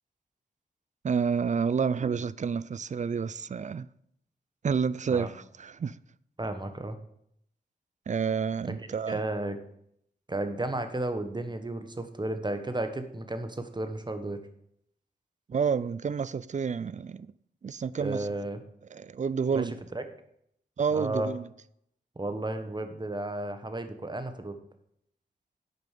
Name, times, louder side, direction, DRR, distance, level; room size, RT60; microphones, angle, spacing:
voice 1, 1.0-3.9 4.6-6.0 8.1-9.2 15.5-17.3 17.6-18.3 18.9-19.8 20.8-21.5, right 6 dB, 45° right, 0.4 m, -29 dB
voice 2, 6.4-7.0 8.6-8.7 9.1-9.6 10.3-14.4 18.0-18.6 19.5-19.6 19.9-20.0 20.9-21.3 22.1-24.6, right 2 dB, 25° right, 1.4 m, -33 dB
8.0 x 5.2 x 7.5 m
cardioid pair, 45°, 18 cm